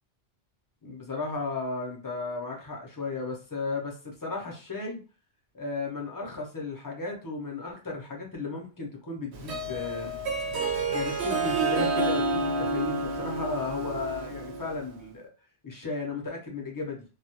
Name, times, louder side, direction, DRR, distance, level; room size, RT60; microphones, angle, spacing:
voice 1, 0.8-5.0 5.5-10.2 10.9-15.3 15.6-17.0, left 3 dB, 25° left, 0 dB, 0.5 m, -35 dB
Harp, 9.3-14.9, right 3 dB, 90° right, 0.9 m, -29 dB
2.2 x 2.1 x 2.8 m, 0.34 s
omnidirectional pair, 1.1 m